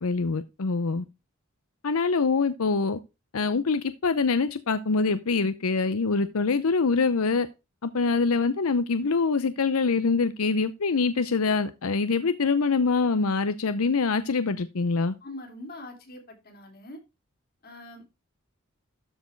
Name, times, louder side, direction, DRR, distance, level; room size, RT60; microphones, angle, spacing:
voice 1, 0.0-1.0 1.8-3.0 3.3-7.5 7.8-15.1, left 4 dB, 90° left, 0.7 m, -24 dB
voice 2, 15.2-17.0 17.6-18.2, left 1 dB, 45° left, 3.3 m, -43 dB
13.0 x 4.6 x 4.6 m
head